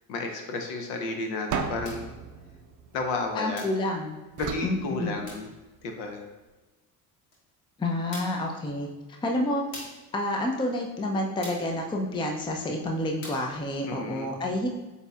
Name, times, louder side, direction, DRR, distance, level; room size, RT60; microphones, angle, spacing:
voice 1, 0.1-2.1 2.9-3.6 4.4-5.5 5.8-6.2 13.9-14.3, left 3 dB, 60° left, 3 dB, 1.0 m, -32 dB
sound 1, 1.5-3.7 4.4-5.8, right 6 dB, 40° right, 0.6 m, -36 dB
sound 2, 1.8-2.1 3.6-3.9 5.3-5.5 7.3-7.4 8.1-8.5 9.7-10.1 11.4-11.8 13.2-13.5, left 1 dB, 85° left, 1.4 m, -43 dB
voice 2, 3.4-4.2 4.6-5.2 7.8-8.9 9.2-9.6 10.1-14.7, left 1 dB, 10° left, 1 dB, 0.5 m, -29 dB
7.8 x 2.8 x 2.4 m, 1.2 s
hypercardioid pair, 70°, 47 cm